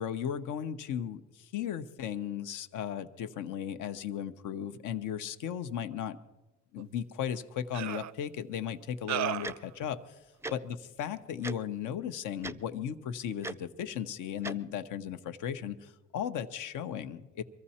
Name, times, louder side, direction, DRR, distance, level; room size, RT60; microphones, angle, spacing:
voice 1, 0.0-6.2 6.7-10.2 10.5-17.4, left 9 dB, 85° left, 9 dB, 0.9 m, -36 dB
sound 1, 6.8-6.9 7.7-8.1 9.1-9.6, right 12 dB, 65° right, 0.5 m, -33 dB
Tick-tock, 9.4-9.5 10.4-10.5 11.4-11.6 12.4-12.6 13.4-13.5 14.4-14.5, right 2 dB, 10° right, 0.4 m, -37 dB
24.0 x 14.0 x 4.3 m, 1.0 s
cardioid pair, 90°, 30 cm